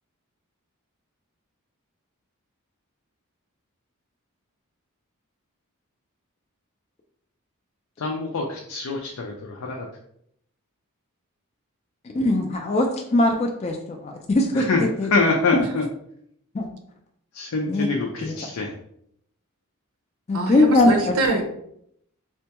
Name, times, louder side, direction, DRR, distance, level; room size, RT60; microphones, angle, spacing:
voice 1, 8.0-9.9 14.5-15.9 17.3-18.7, left 3 dB, 85° left, 1 dB, 0.5 m, -25 dB
voice 2, 12.1-15.1 16.5-16.7 17.7-17.9 18.2-18.3 20.3-20.9, left 2 dB, 30° left, 2 dB, 0.3 m, -21 dB
voice 3, 20.3-21.4, right 2 dB, 70° right, 4 dB, 0.6 m, -25 dB
4.2 x 2.2 x 2.9 m, 0.72 s
head